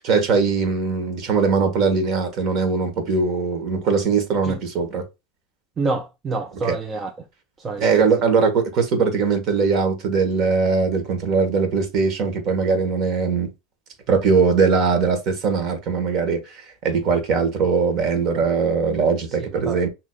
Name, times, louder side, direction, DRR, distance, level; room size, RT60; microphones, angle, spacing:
voice 1, 0.0-5.0 6.6-6.8 7.8-13.5 14.1-19.9, right 5 dB, 50° right, 1.4 m, -21 dB
voice 2, 5.8-7.1 7.6-8.0 19.4-19.8, right 3 dB, 25° right, 0.5 m, -27 dB
6.0 x 2.8 x 2.3 m
supercardioid pair, 120°, 0 cm